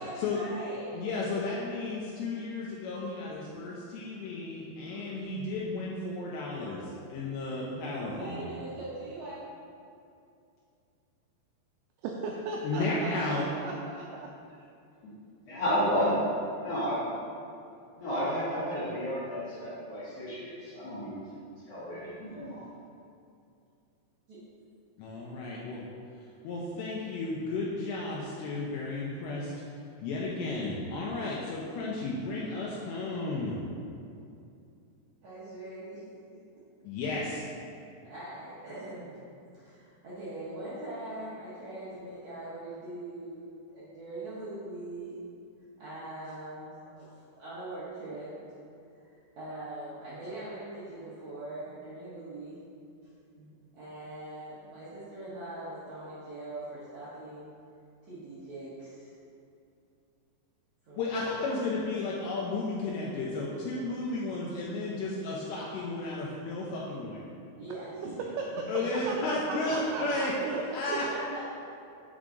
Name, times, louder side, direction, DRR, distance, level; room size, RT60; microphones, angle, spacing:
voice 1, 0.0-1.1 4.9-5.1 8.0-9.4 24.3-24.4 35.2-36.0 36.3-36.4 38.0-39.2 39.5-45.2 45.8-47.1 47.4-48.3 49.4-52.6 53.3-57.5 58.1-59.1 60.8-61.3 67.6-68.1 68.8-69.4 69.7-70.0 70.9-71.4, right 2 dB, 70° right, -11 dB, 1.7 m, -41 dB
voice 2, 0.9-8.5 12.6-13.5 25.0-25.8 26.4-29.5 30.0-33.6 36.8-37.4 61.0-67.2 68.7-70.3 70.7-71.1, left 3 dB, 80° left, -4 dB, 2.7 m, -33 dB
voice 3, 12.0-14.3 68.4-68.7 69.1-70.8, right 3 dB, 90° right, 0 dB, 2.3 m, -36 dB
voice 4, 15.5-16.2 16.6-16.9 18.0-21.2 21.7-22.6, equal, 60° left, -10 dB, 2.1 m, -31 dB
7.4 x 4.7 x 3.8 m, 2.5 s
omnidirectional pair, 5.1 m